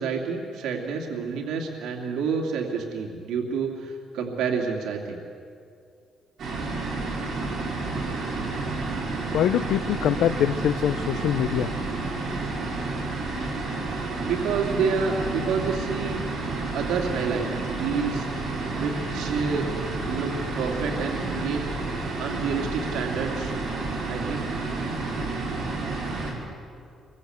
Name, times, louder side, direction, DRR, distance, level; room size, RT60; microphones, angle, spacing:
voice 1, 0.0-5.2 14.2-16.2 16.7-18.3 18.7-19.7 20.0-21.6 22.2-23.5 24.1-24.5, right 5 dB, 90° right, 1 dB, 2.8 m, -28 dB
sound 1, 6.4-26.3, right 3 dB, 50° right, 6.0 m, -30 dB
voice 2, 9.3-11.7, left 10 dB, 75° left, 12 dB, 0.5 m, -24 dB
26.0 x 22.5 x 8.2 m, 2.4 s
cardioid pair, 155°, 0 cm